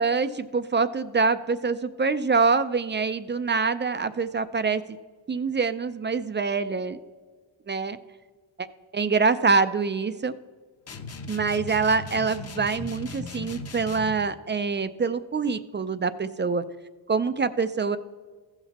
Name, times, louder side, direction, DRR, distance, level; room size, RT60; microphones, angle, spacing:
voice 1, 0.0-4.8 5.3-7.0 7.7-8.0 8.6-8.7 8.9-10.3 11.3-16.6 17.1-18.0, right 4 dB, 25° right, 13 dB, 0.3 m, -25 dB
sound 1, 10.9-14.3, left 4 dB, 35° left, 0.8 m, -38 dB
15.0 x 5.9 x 4.1 m, 1.5 s
cardioid pair, 100°, 47 cm